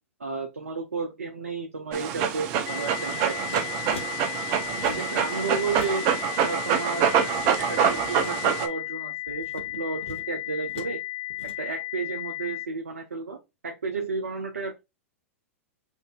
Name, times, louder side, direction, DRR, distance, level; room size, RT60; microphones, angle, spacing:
voice 1, 0.2-3.6 4.8-6.0 6.4-11.0 11.6-14.9, right 4 dB, 80° right, 3 dB, 0.7 m, -33 dB
Dog, 1.9-8.7, right 8 dB, 45° right, 0.7 m, -26 dB
sound 1, 2.7-12.7, left 18 dB, 40° left, 0.7 m, -35 dB
sound 2, 3.5-4.1 4.6-5.2 5.5-6.2 6.6-8.3 9.2-10.9 11.3-11.5, left 2 dB, 65° left, 1.6 m, -42 dB
5.2 x 2.7 x 2.4 m, 0.22 s
figure-of-eight pair, 95°, 7 cm